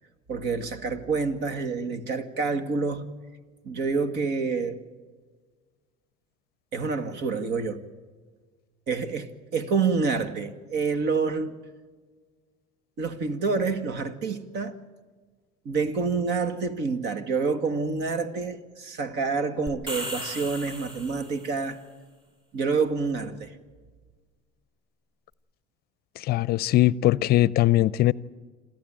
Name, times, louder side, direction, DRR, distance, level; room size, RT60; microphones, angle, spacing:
voice 1, 0.3-3.1 3.6-4.8 6.7-7.8 8.9-11.6 13.0-14.8 15.7-21.8 22.5-23.6, right 4 dB, 55° right, 2.1 m, -27 dB
sound 1, 19.7-21.6, equal, 25° right, 4.6 m, -36 dB
voice 2, 26.2-28.1, left 15 dB, 50° left, 0.6 m, -21 dB
28.0 x 13.0 x 9.0 m
supercardioid pair, 100°, 20 cm